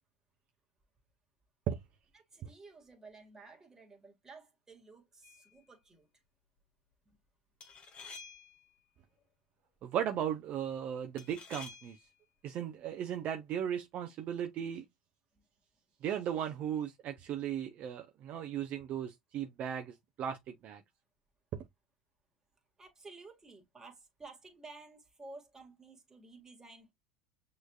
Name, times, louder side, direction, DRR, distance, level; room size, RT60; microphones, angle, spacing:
voice 1, 2.1-6.1 7.1-7.2 15.3-15.5 22.8-26.9, right 3 dB, 15° right, 1.9 m, -53 dB
sound 1, 5.2-5.5 7.6-8.7 11.2-12.1, left 5 dB, 35° left, 1.6 m, -50 dB
voice 2, 9.8-12.0 12.4-14.8 16.0-20.8, right 9 dB, 45° right, 0.7 m, -36 dB
6.2 x 3.2 x 2.4 m
hypercardioid pair, 105°, 4 cm